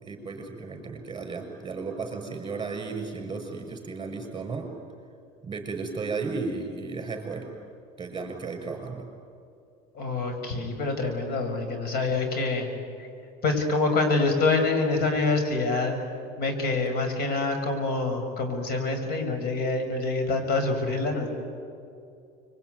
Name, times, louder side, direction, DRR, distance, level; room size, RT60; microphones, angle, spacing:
voice 1, 0.0-4.7 5.4-7.5 8.0-9.1, right 4 dB, 25° right, 4 dB, 6.5 m, -34 dB
voice 2, 9.9-12.7 13.0-13.1 13.4-16.0 16.4-21.3, left 3 dB, 55° left, 6 dB, 6.2 m, -26 dB
26.0 x 23.5 x 9.5 m, 2.5 s
supercardioid pair, 105°, 19 cm